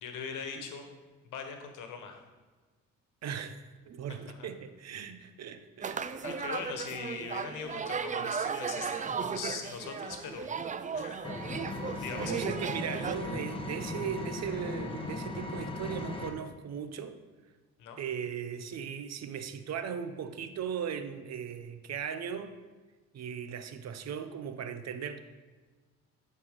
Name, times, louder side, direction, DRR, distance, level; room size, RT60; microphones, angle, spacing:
voice 1, 0.0-0.9 1.2-2.2 4.4-4.5 6.2-11.4 12.0-12.4 17.8-18.0, left 6 dB, 85° left, 5 dB, 1.2 m, -41 dB
voice 2, 3.2-3.6 3.9-6.0 12.1-17.2 18.0-22.6 23.1-25.2, right 7 dB, 60° right, 10 dB, 0.8 m, -38 dB
sound 1, 5.8-13.1, right 6 dB, 25° right, 0.4 m, -36 dB
Engine, 11.2-16.3, left 2 dB, 20° left, 1.2 m, -37 dB
10.5 x 4.6 x 5.0 m, 1.3 s
cardioid pair, 90°, 30 cm